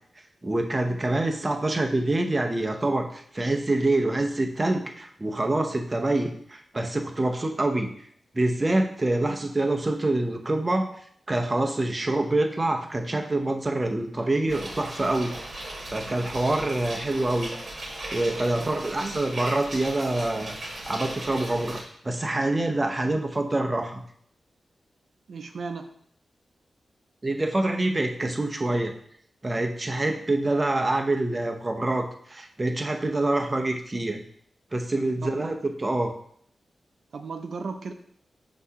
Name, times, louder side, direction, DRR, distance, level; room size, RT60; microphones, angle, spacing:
voice 1, 0.4-7.9 8.3-10.9 11.3-15.3 15.9-17.5 18.1-20.6 20.9-24.0 27.2-28.9 29.4-34.2 34.7-36.1, right 2 dB, 25° right, 3 dB, 0.7 m, -26 dB
sound 1, 14.5-21.8, right 1 dB, 45° right, 1.6 m, -37 dB
voice 2, 18.6-19.2 25.3-25.9 35.2-35.5 37.1-37.9, right 4 dB, 75° right, 6 dB, 0.4 m, -36 dB
6.0 x 2.8 x 5.5 m, 0.63 s
wide cardioid pair, 105°, 0 cm